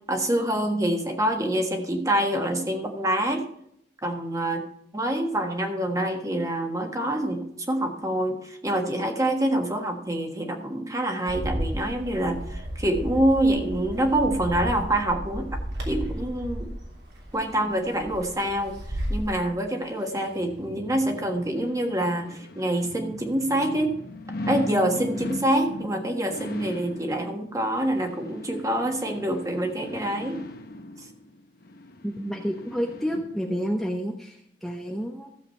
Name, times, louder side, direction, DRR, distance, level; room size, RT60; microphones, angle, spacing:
voice 1, 0.1-3.4 4.0-4.7 4.9-15.5 15.8-16.7 17.3-24.0 24.5-30.4 31.0-31.1, right 1 dB, 20° right, 3 dB, 1.4 m, -26 dB
Bird, 11.3-19.3, equal, 75° right, 3.1 m, -33 dB
sound 1, 19.8-33.7 34.2-34.3, left 1 dB, 60° left, 1.0 m, -39 dB
voice 2, 32.0-35.3, equal, ahead, 0 dB, 0.8 m, -30 dB
14.0 x 7.3 x 4.4 m, 0.73 s
head